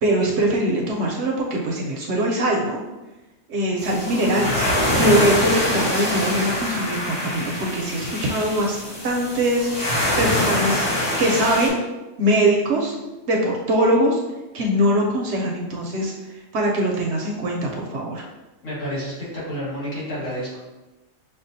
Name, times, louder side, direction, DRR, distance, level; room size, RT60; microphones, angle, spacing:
voice 1, 0.0-2.8 3.5-4.6 5.0-8.8 9.0-10.9 11.2-11.7 12.2-12.9 13.3-14.2 14.5-16.1 16.5-18.2, right 1 dB, 65° right, -1 dB, 0.8 m, -22 dB
sound 1, 3.8-11.7, left 1 dB, 50° left, 1.5 m, -24 dB
voice 2, 18.6-20.6, equal, 65° left, -9 dB, 2.1 m, -29 dB
6.1 x 2.3 x 2.6 m, 1.1 s
omnidirectional pair, 1.4 m